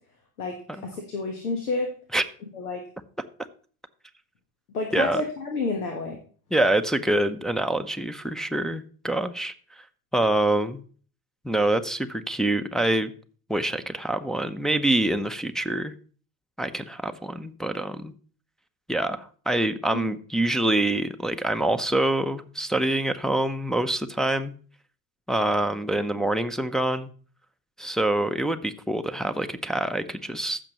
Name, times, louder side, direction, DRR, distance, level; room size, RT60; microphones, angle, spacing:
voice 1, 0.8-1.9 2.5-2.8 4.7-6.2 19.9-20.0, left 3 dB, 85° left, 3 dB, 1.5 m, -29 dB
voice 2, 6.5-9.5 10.1-10.8 11.4-13.1 13.5-15.9 16.6-18.1 18.9-24.5 25.3-27.1 27.8-30.6, right 1 dB, ahead, 6 dB, 0.6 m, -25 dB
15.0 x 6.1 x 3.0 m, 0.41 s
hypercardioid pair, 70°, 44 cm